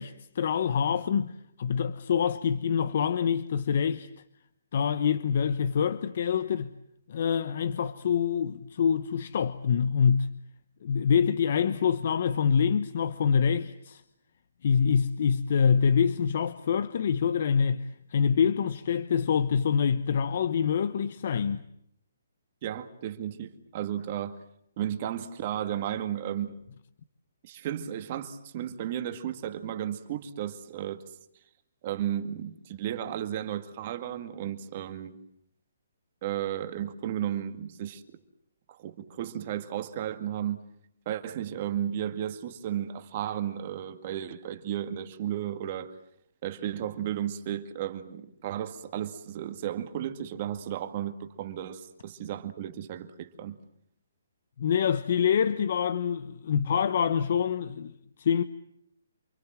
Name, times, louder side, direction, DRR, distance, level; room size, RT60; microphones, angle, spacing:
voice 1, 0.0-4.1 4.7-6.7 7.1-10.3 10.8-14.0 14.6-21.7 54.6-57.9 58.2-58.4, left 7 dB, 40° left, 1.0 m, -26 dB
voice 2, 22.6-24.4 24.8-26.6 27.4-31.0 31.8-35.2 36.2-38.0 38.7-40.6 41.1-45.9 46.4-53.6, right 11 dB, 25° right, 2.1 m, -34 dB
29.0 x 25.0 x 7.6 m
hypercardioid pair, 175°, 0 cm